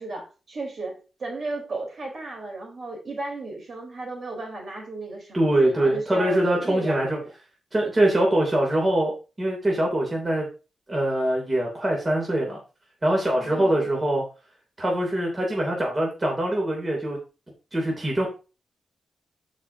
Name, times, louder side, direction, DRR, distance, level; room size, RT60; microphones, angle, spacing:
voice 1, 0.0-7.3 13.3-13.9, right 2 dB, 50° right, 1 dB, 4.0 m, -34 dB
voice 2, 5.3-7.2 7.7-9.1 9.4-10.5 10.9-12.6 13.0-14.2 14.8-17.2 17.7-18.3, right 1 dB, 25° right, -1 dB, 2.9 m, -23 dB
13.5 x 5.1 x 2.8 m, 0.32 s
cardioid pair, 100°, 0 cm